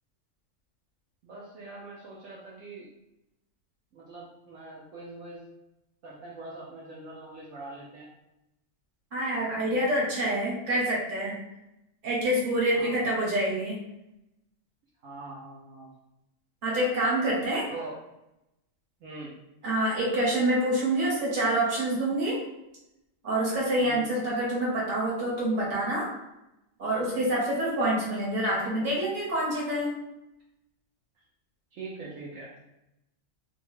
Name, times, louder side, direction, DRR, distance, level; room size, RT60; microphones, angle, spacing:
voice 1, 1.2-2.9 3.9-5.4 6.0-8.1 12.7-13.0 15.0-15.9 17.7-18.0 19.0-19.3 23.8-24.2 31.7-32.6, right 2 dB, 75° right, -5 dB, 1.0 m, -43 dB
voice 2, 9.1-11.4 12.0-13.8 16.6-17.7 19.6-22.4 23.2-26.1 26.8-29.9, right 1 dB, 40° right, -6 dB, 1.2 m, -27 dB
2.7 x 2.2 x 3.1 m, 0.90 s
omnidirectional pair, 1.4 m